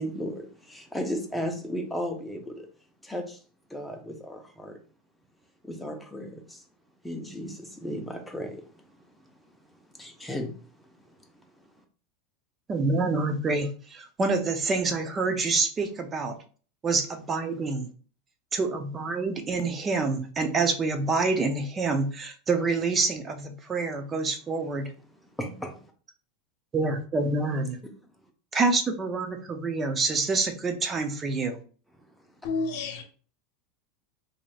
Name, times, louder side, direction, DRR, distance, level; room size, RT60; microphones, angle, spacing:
voice 1, 0.0-2.7 3.0-3.4 3.7-4.8 5.6-6.6 7.0-9.0 9.9-10.8 11.2-11.3 25.4-25.8, equal, 5° left, 3 dB, 0.8 m, -35 dB
voice 2, 12.7-16.4 16.8-17.9 18.5-24.9 26.7-27.8 28.5-31.6, right 3 dB, 25° right, 6 dB, 0.5 m, -27 dB
voice 3, 32.4-33.0, left 3 dB, 65° left, 5 dB, 0.8 m, -29 dB
2.9 x 2.7 x 2.4 m, 0.40 s
hypercardioid pair, 95°, 0 cm